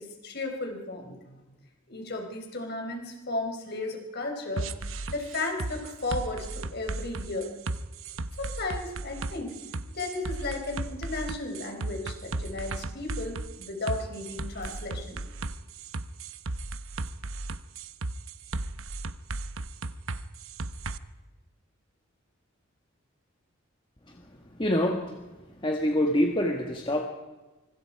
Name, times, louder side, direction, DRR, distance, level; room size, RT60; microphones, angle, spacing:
voice 1, 0.0-1.4 1.9-4.7 5.1-7.5 8.4-9.6 9.9-15.2, left 2 dB, 50° left, 3 dB, 4.6 m, -34 dB
sound 1, 4.6-21.0, right 2 dB, 70° right, 1.0 m, -35 dB
voice 2, 24.6-25.1 25.6-27.0, left 1 dB, 25° left, 2 dB, 1.7 m, -26 dB
25.5 x 25.0 x 4.8 m, 1.1 s
head